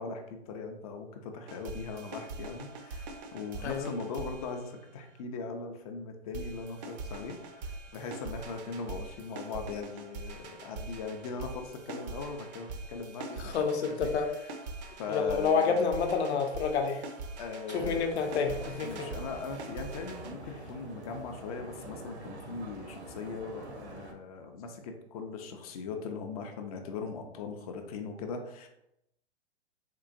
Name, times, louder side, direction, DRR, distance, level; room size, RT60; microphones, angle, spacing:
voice 1, 0.0-13.5 13.8-14.5 15.0-15.9 17.4-18.1 18.8-28.7, left 4 dB, 35° left, 5 dB, 0.4 m, -40 dB
sound 1, 1.5-5.2 6.3-20.3, right 3 dB, 40° right, 0.5 m, -43 dB
voice 2, 13.4-14.3 15.1-17.0 17.7-19.1, left 5 dB, 70° left, 4 dB, 0.7 m, -29 dB
sound 2, 17.7-24.1, right 3 dB, 70° right, 0.8 m, -45 dB
3.7 x 2.7 x 2.5 m, 0.82 s
hypercardioid pair, 125°, 34 cm